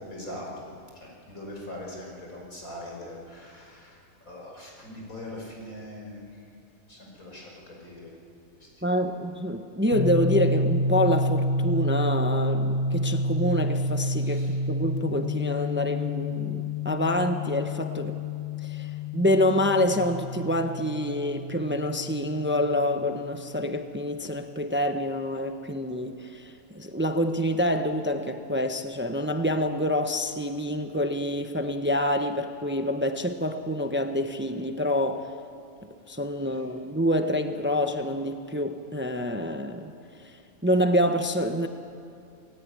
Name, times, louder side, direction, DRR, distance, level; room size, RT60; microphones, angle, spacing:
voice 1, 0.1-0.7 0.9-4.0 4.2-6.2 6.9-8.1 8.6-8.7 14.2-14.5, left 1 dB, 85° left, -1 dB, 6.2 m, -41 dB
voice 2, 8.8-18.2 18.6-35.3 36.1-39.9 40.2-41.7, equal, 10° right, 7 dB, 0.9 m, -27 dB
sound 1, 9.9-23.5, left 1 dB, 45° left, 2.5 m, -29 dB
27.5 x 18.0 x 9.9 m, 2.5 s
omnidirectional pair, 1.4 m